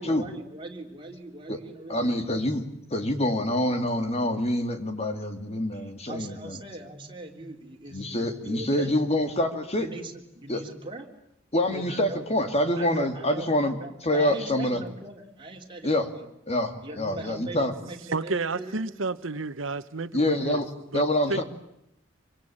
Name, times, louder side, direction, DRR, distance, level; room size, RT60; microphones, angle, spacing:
voice 1, 0.0-2.3 5.7-8.9 9.8-11.1 11.7-12.2 12.8-16.3 16.8-18.8, right 2 dB, 25° right, 1 dB, 3.8 m, -40 dB
voice 2, 1.9-2.6 2.9-6.6 7.9-9.9 10.5-10.6 11.5-13.8 14.0-14.8 15.8-16.1 16.5-17.7 20.1-20.7 20.9-21.4, left 1 dB, 35° left, 7 dB, 2.5 m, -26 dB
voice 3, 18.1-20.6 20.9-21.0 21.3-21.4, right 3 dB, 85° right, 12 dB, 1.2 m, -30 dB
26.0 x 25.0 x 8.9 m, 0.79 s
head